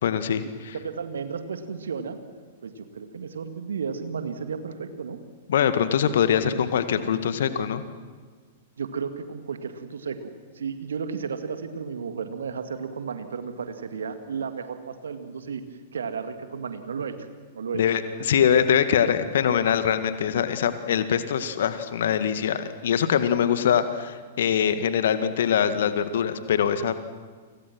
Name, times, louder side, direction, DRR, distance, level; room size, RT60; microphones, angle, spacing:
voice 1, 0.0-0.7 5.5-7.8 17.7-27.0, left 8 dB, 60° left, 11 dB, 1.9 m, -23 dB
voice 2, 0.7-2.2 2.6-5.2 8.8-15.6 15.9-17.2 17.5-17.8, right 6 dB, 70° right, 8 dB, 2.2 m, -33 dB
30.0 x 25.0 x 6.2 m, 1.5 s
figure-of-eight pair, 105°, 0 cm